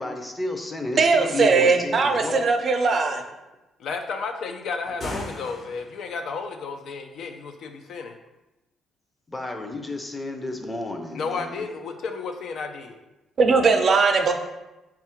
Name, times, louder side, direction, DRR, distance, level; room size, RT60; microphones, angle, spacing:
voice 1, 0.0-2.5 9.3-11.7, left 2 dB, 20° left, 4 dB, 0.5 m, -32 dB
voice 2, 1.0-3.2 13.4-14.3, right 4 dB, 50° right, 5 dB, 0.4 m, -19 dB
voice 3, 3.8-8.1 11.1-13.0, left 4 dB, 70° left, 5 dB, 0.4 m, -32 dB
sound 1, 4.8-6.1, left 1 dB, 45° left, 0.9 m, -36 dB
3.6 x 2.4 x 4.3 m, 1.0 s
cardioid pair, 90°, 0 cm